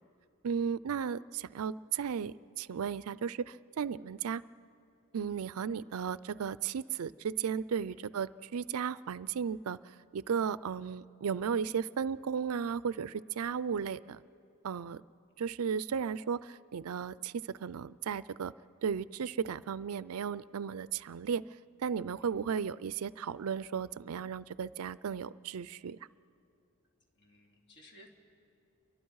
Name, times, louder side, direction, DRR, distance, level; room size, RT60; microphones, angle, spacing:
voice 1, 0.4-4.4 5.1-14.2 14.6-15.0 15.4-18.5 18.8-21.4 21.8-26.0, right 7 dB, 75° right, 18 dB, 0.4 m, -35 dB
voice 2, 27.1-28.1, left 1 dB, 55° left, 0 dB, 3.1 m, -59 dB
29.5 x 23.5 x 4.7 m, 2.4 s
head